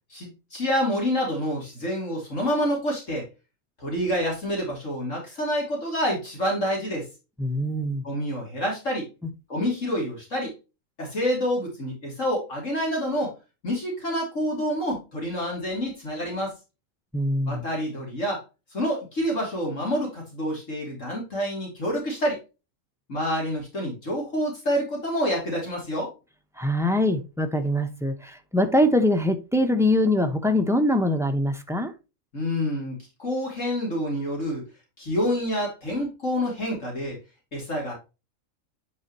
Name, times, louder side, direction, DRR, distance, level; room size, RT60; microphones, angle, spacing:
voice 1, 0.1-3.3 3.8-7.1 8.0-9.1 9.5-10.5 11.0-13.3 13.6-16.5 17.5-18.4 18.7-22.4 23.1-26.1 32.3-34.6 35.0-37.2 37.5-37.9, equal, 60° left, 3.1 m, -27 dB
voice 2, 7.4-8.0 9.2-9.3 17.1-17.6 26.6-31.9, left 1 dB, ahead, 0.8 m, -23 dB
9.5 x 5.1 x 3.0 m
omnidirectional pair, 1.5 m